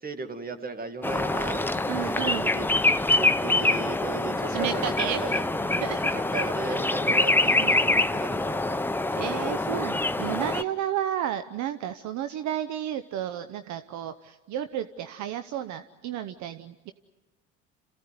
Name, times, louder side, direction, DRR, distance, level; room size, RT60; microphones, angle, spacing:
voice 1, 0.0-2.7 3.2-5.9 6.1-8.8, right 3 dB, 25° right, 8 dB, 2.3 m, -36 dB
sound 1, 1.0-10.6, left 2 dB, 5° left, 0.8 m, -25 dB
voice 2, 1.9-2.5 4.5-5.2 5.8-6.1 6.6-6.8 7.5-7.8 9.1-16.9, right 11 dB, 60° right, 11 dB, 0.9 m, -32 dB
27.5 x 16.0 x 9.6 m, 1.2 s
hypercardioid pair, 70°, 33 cm